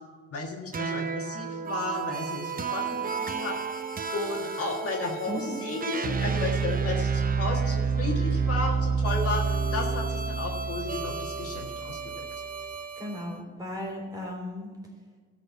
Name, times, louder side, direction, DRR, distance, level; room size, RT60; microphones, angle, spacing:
voice 1, 0.3-3.5 4.1-9.4 9.7-12.3, left 3 dB, 50° left, 0 dB, 1.5 m, -33 dB
sound 1, 0.7-13.2, right 5 dB, 30° right, 0.7 m, -30 dB
voice 2, 13.0-14.7, left 1 dB, 15° right, 0 dB, 3.6 m, -36 dB
13.0 x 4.5 x 8.2 m, 1.5 s
cardioid pair, 90°, 30 cm